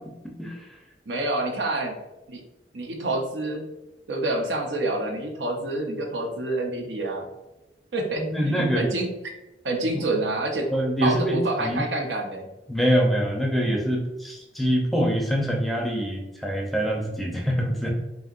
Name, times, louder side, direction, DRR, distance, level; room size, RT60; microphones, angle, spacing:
voice 1, 1.1-1.9 2.3-2.4 2.7-3.6 4.1-7.2 7.9-9.1 9.6-10.7 11.0-12.5, right 2 dB, 80° right, 2 dB, 0.8 m, -27 dB
voice 2, 8.2-8.9 9.9-10.0 10.7-11.8 12.7-18.1, equal, ahead, 0 dB, 0.6 m, -25 dB
5.5 x 2.8 x 2.5 m, 0.96 s
head